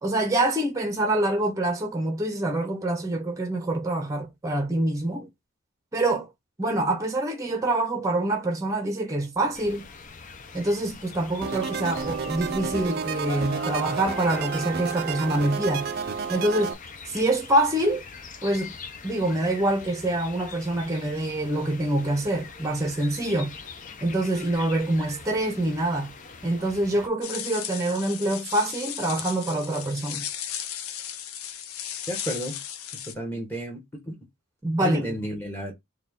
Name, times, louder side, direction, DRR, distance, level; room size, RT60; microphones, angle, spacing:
voice 1, 0.0-5.3 5.9-6.3 6.6-9.8 10.5-15.9 16.3-16.7 17.1-18.0 18.4-18.7 19.0-23.5 24.0-26.1 26.4-30.3 34.6-35.1, right 1 dB, 15° right, 0.7 m, -25 dB
sound 1, 9.5-27.1, left 4 dB, 35° left, 0.5 m, -43 dB
sound 2, 11.4-16.7, right 6 dB, 45° right, 0.4 m, -31 dB
sound 3, 27.2-33.1, left 9 dB, 90° left, 0.6 m, -35 dB
voice 2, 32.1-32.6 33.0-34.1 34.8-35.7, equal, 10° left, 1.1 m, -32 dB
4.0 x 2.3 x 3.6 m
head